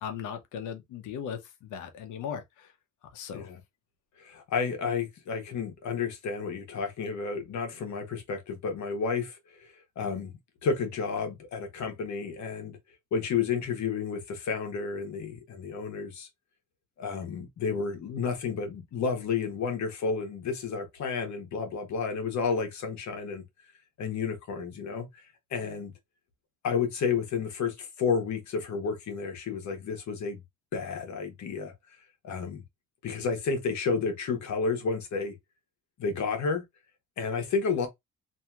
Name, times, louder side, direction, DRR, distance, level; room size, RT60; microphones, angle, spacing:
voice 1, 0.0-2.7 3.1-3.5, left 8 dB, 85° left, 0.8 m, -38 dB
voice 2, 4.2-12.8 13.1-16.3 17.0-23.4 24.0-25.2 25.5-25.9 26.6-30.4 30.7-31.7 32.2-32.6 33.0-35.3 36.0-36.6 37.2-37.9, left 5 dB, 65° left, 1.1 m, -31 dB
2.8 x 2.7 x 2.3 m
cardioid pair, 90°, 30 cm